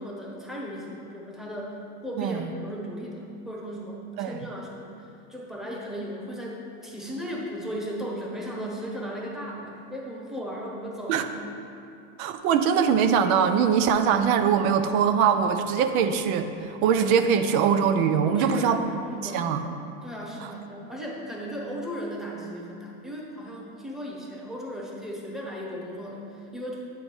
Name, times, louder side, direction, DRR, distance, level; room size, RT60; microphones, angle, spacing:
voice 1, 0.0-11.4 18.3-19.6 20.0-26.8, equal, ahead, -3 dB, 1.0 m, -36 dB
voice 2, 2.2-2.5 4.2-4.4 11.1-11.3 12.2-18.8 19.2-19.6, right 7 dB, 85° right, 8 dB, 0.6 m, -22 dB
8.5 x 3.6 x 6.1 m, 2.6 s
supercardioid pair, 125°, 40 cm